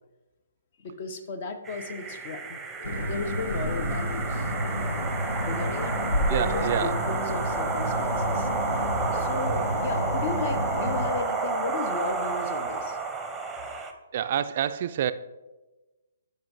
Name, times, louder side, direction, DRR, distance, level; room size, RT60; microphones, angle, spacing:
voice 1, 0.8-4.5 5.5-6.0 6.3-13.0, left 4 dB, 45° left, 9 dB, 0.8 m, -35 dB
sound 1, 1.7-13.9, right 4 dB, 10° right, 0.7 m, -31 dB
sound 2, 2.8-11.1, equal, 80° left, 1.0 m, -30 dB
voice 2, 6.3-7.0 14.1-15.1, right 10 dB, 45° right, 12 dB, 0.3 m, -27 dB
12.0 x 5.3 x 2.6 m, 1.1 s
figure-of-eight pair, 135°, 0 cm